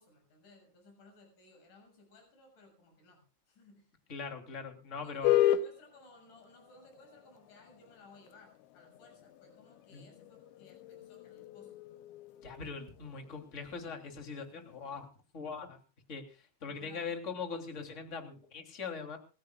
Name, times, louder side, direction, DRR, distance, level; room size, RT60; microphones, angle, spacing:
voice 1, 0.0-3.2 3.5-3.9 4.9-11.7 16.6-17.1, left 2 dB, 40° left, 3 dB, 8.6 m, -59 dB
voice 2, 4.1-5.4 9.9-10.1 12.4-15.1 15.3-15.8 16.1-19.2, left 5 dB, 20° left, 4 dB, 2.6 m, -41 dB
sound 1, 5.2-15.1, left 12 dB, 75° left, 3.0 m, -36 dB
28.0 x 14.5 x 2.4 m, 0.35 s
omnidirectional pair, 5.5 m